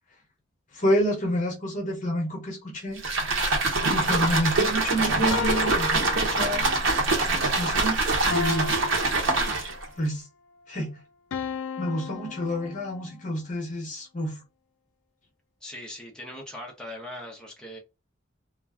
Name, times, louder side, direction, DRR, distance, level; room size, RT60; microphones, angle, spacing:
voice 1, 0.7-3.0 3.9-6.6 7.6-8.0 8.3-8.7 10.0-10.3 10.7-11.0 11.8-14.4, equal, 40° left, 0.9 m, -28 dB
sound 1, 3.0-9.9, right 3 dB, 75° right, 0.8 m, -24 dB
sound 2, 5.3-6.9 8.3-10.0 11.3-13.2, left 6 dB, 70° left, 0.3 m, -35 dB
voice 2, 15.6-17.8, left 1 dB, 5° left, 0.6 m, -40 dB
2.4 x 2.2 x 3.4 m
head